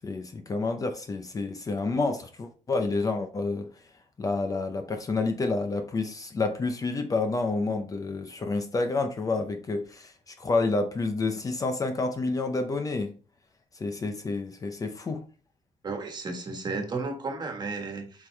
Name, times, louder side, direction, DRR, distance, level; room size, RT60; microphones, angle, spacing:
voice 1, 0.0-3.7 4.2-13.1 13.7-15.2, left 3 dB, 25° left, 0.6 m, -29 dB
voice 2, 15.8-18.3, right 3 dB, 35° right, 1.5 m, -33 dB
7.9 x 5.4 x 3.3 m
wide cardioid pair, 175°, 13 cm